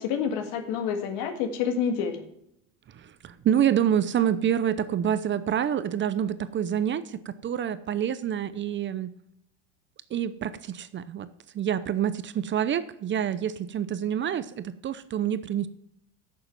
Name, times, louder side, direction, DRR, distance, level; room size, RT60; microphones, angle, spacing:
voice 1, 0.0-2.2, left 7 dB, 70° left, 7 dB, 1.8 m, -28 dB
voice 2, 2.9-9.1 10.1-11.3 11.5-15.7, right 9 dB, 35° right, 14 dB, 0.6 m, -27 dB
10.5 x 6.7 x 6.0 m, 0.78 s
supercardioid pair, 100°, 35 cm